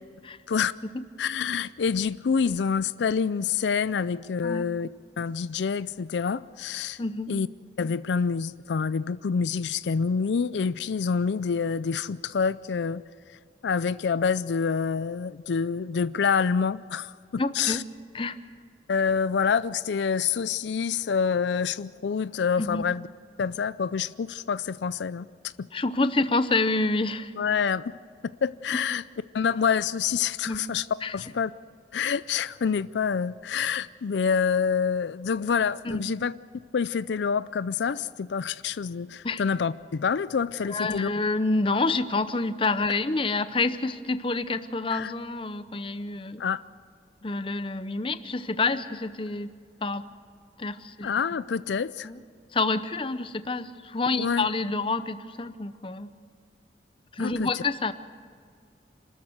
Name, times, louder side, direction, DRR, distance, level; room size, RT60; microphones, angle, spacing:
voice 1, 1.2-4.9 5.2-7.0 7.3-7.5 7.8-13.0 13.6-17.8 18.9-23.1 23.4-25.7 27.4-27.9 28.4-29.0 29.3-30.9 31.1-31.5 31.9-36.3 36.7-41.1 44.9-45.1 46.4-46.6 51.0-52.1 54.2-54.5 57.2-57.6, left 6 dB, 80° left, 16 dB, 0.4 m, -27 dB
voice 2, 7.0-7.3 17.4-17.8 18.1-18.4 22.6-22.9 25.7-27.3 30.5-30.6 31.0-31.1 35.8-36.0 39.2-39.4 40.7-46.4 47.2-49.5 49.8-50.0 50.6-51.1 52.0-52.2 52.5-56.1 57.1-57.9, left 3 dB, 30° left, 12 dB, 0.7 m, -28 dB
27.5 x 13.0 x 7.9 m, 2.2 s
head